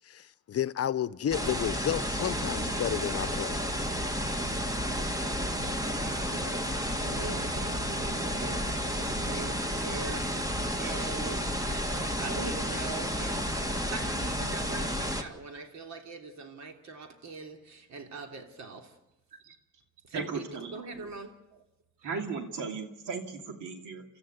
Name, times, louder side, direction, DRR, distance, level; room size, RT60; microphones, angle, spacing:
voice 1, 0.0-3.7, left 10 dB, 50° left, 0.8 m, -31 dB
sound 1, 1.3-15.2, equal, 10° right, 1.9 m, -31 dB
voice 2, 4.7-19.0 20.0-21.3, right 3 dB, 65° right, 3.1 m, -43 dB
voice 3, 20.1-20.7 22.0-24.0, right 5 dB, 85° right, 2.8 m, -36 dB
28.5 x 13.5 x 8.2 m
cardioid pair, 90°, 30 cm